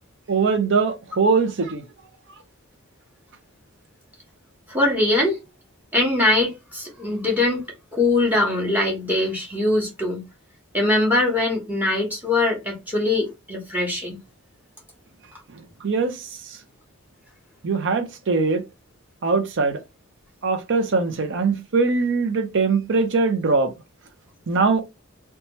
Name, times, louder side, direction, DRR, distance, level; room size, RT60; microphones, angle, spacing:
voice 1, 0.3-1.8 15.8-16.2 17.6-18.6 19.2-19.8 20.4-23.7 24.5-24.8, right 4 dB, 60° right, 0.6 m, -21 dB
voice 2, 4.7-5.3 5.9-7.6 7.9-10.2 10.7-14.2, left 2 dB, 10° right, 0.9 m, -22 dB
2.9 x 2.2 x 2.9 m
head